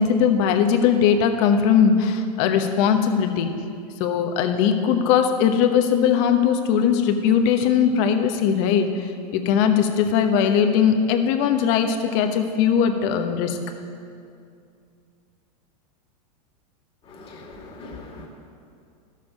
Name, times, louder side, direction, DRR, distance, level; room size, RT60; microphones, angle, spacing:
voice 1, 0.0-3.5 4.0-13.6, left 7 dB, 50° left, 6 dB, 1.0 m, -20 dB
voice 2, 17.1-18.3, left 3 dB, 25° left, -1 dB, 2.0 m, -41 dB
12.5 x 6.7 x 5.3 m, 2.4 s
hypercardioid pair, 130°, 20 cm